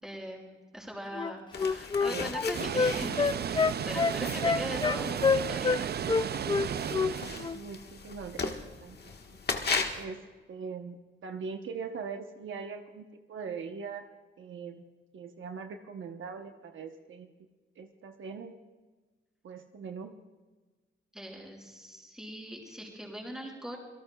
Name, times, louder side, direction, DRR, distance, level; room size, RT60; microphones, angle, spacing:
voice 1, 0.0-5.9 21.1-23.8, equal, 5° right, -1 dB, 5.2 m, -41 dB
Wind instrument woodwind instrument, 1.1-5.8 6.1-7.1 7.4-7.6, left 5 dB, 25° left, 0.4 m, -27 dB
sound 1, 1.5-10.0, left 4 dB, 55° left, 1.5 m, -38 dB
voice 2, 1.9-2.3 4.0-4.3 7.5-9.4 10.0-10.2 10.5-14.0 14.4-14.8 15.1-17.3 17.8-18.6 19.4-20.1, right 5 dB, 70° right, 5 dB, 1.0 m, -41 dB
Water, 2.5-7.6, right 8 dB, 55° right, 0.5 m, -34 dB
27.0 x 18.0 x 2.3 m, 1.3 s
cardioid pair, 105°, 21 cm